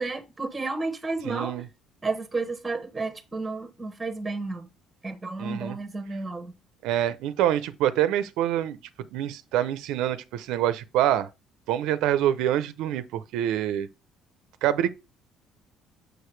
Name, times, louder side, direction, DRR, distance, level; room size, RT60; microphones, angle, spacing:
voice 1, 0.0-1.6 2.0-4.6 5.0-6.5, right 3 dB, 10° right, 0.9 m, -32 dB
voice 2, 1.2-1.7 5.4-5.8 6.8-8.8 9.1-11.3 11.7-13.9 14.6-14.9, right 11 dB, 85° right, 0.5 m, -26 dB
6.3 x 4.8 x 3.2 m
cardioid pair, 155°, 0 cm